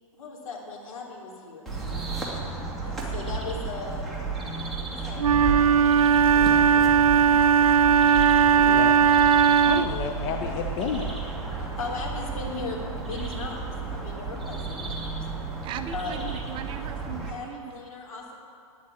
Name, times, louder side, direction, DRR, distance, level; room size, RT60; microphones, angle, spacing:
voice 1, 0.1-1.7 2.8-4.1 4.7-5.6 6.3-7.0 8.1-8.3 9.8-9.9 11.2-13.6 13.9-15.2 15.9-16.2 17.3-18.4, left 3 dB, 75° left, -2 dB, 3.3 m, -38 dB
sound 1, 1.7-17.3, right 4 dB, ahead, 2.2 m, -32 dB
Wind instrument woodwind instrument, 5.2-10.0, right 7 dB, 85° right, 0.4 m, -18 dB
voice 2, 8.6-9.0 9.6-11.3, left 7 dB, 40° left, 4 dB, 0.9 m, -31 dB
voice 3, 15.6-17.8, right 10 dB, 30° right, 8 dB, 0.6 m, -38 dB
9.6 x 8.5 x 9.6 m, 2.5 s
hypercardioid pair, 125°, 18 cm